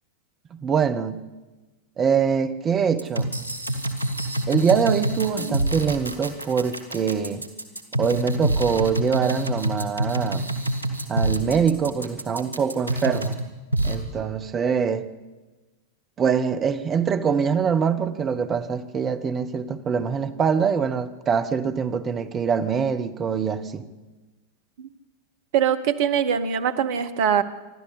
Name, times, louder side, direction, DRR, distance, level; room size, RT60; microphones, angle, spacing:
voice 1, 0.6-1.2 2.0-3.3 4.5-7.4 8.0-10.5 11.1-13.4 13.8-15.1 16.2-23.9, right 6 dB, 25° right, 9 dB, 1.3 m, -24 dB
sound 1, 3.0-13.4 13.7-13.9, right 1 dB, 85° left, 2.4 m, -26 dB
voice 2, 25.5-27.4, right 8 dB, 50° right, 11 dB, 1.3 m, -22 dB
27.0 x 12.5 x 8.3 m, 1.2 s
figure-of-eight pair, 90°, 0 cm